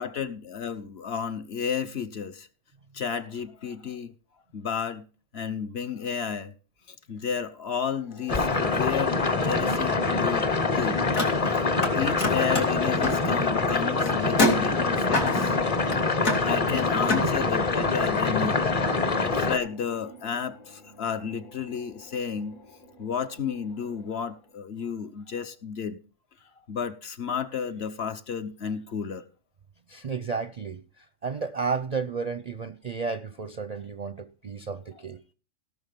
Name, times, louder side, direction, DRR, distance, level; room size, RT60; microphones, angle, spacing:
voice 1, 0.0-2.5 2.9-4.1 4.5-5.1 5.3-6.5 7.1-10.5 10.7-11.0 12.0-15.5 16.4-18.7 19.2-22.6 23.0-26.0 26.7-29.2, left 7 dB, 55° left, 1.1 m, -32 dB
sound 1, 8.0-24.5, left 2 dB, 70° left, 3.1 m, -46 dB
sound 2, 8.3-19.6, left 3 dB, 30° left, 0.9 m, -25 dB
Car, 11.0-11.9 12.2-17.3, left 2 dB, 85° left, 3.2 m, -29 dB
voice 2, 16.7-17.4 29.9-35.2, right 5 dB, 45° right, 0.5 m, -33 dB
17.0 x 6.5 x 5.3 m
omnidirectional pair, 1.4 m